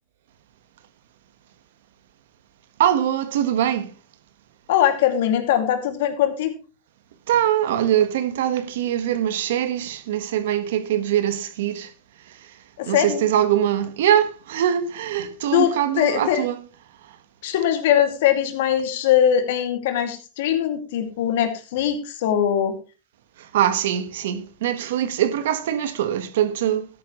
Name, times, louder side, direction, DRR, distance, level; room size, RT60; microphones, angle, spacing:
voice 1, 2.8-3.9 7.3-11.9 12.9-16.6 23.4-26.9, right 10 dB, 80° right, 1.4 m, -22 dB
voice 2, 4.7-6.5 12.8-13.2 15.5-16.4 17.4-22.7, left 10 dB, 75° left, 2.4 m, -21 dB
13.5 x 10.0 x 3.1 m
supercardioid pair, 150°, 0 cm